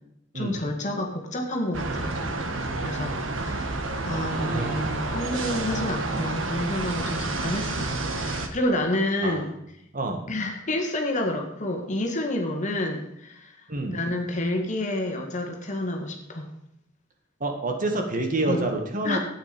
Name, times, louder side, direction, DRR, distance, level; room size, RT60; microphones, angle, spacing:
voice 1, 0.3-2.5 2.8-3.8 4.0-9.5 10.3-13.5 13.9-16.5 18.5-18.6 19.0-19.2, left 1 dB, 40° left, 2 dB, 1.9 m, -29 dB
sound 1, 1.7-8.5, right 2 dB, 85° right, 1.3 m, -30 dB
voice 2, 4.1-4.9 9.2-9.4 9.9-10.2 13.7-14.0 17.4-19.2, right 2 dB, 45° right, 4 dB, 1.7 m, -28 dB
12.0 x 8.6 x 5.2 m, 0.78 s
head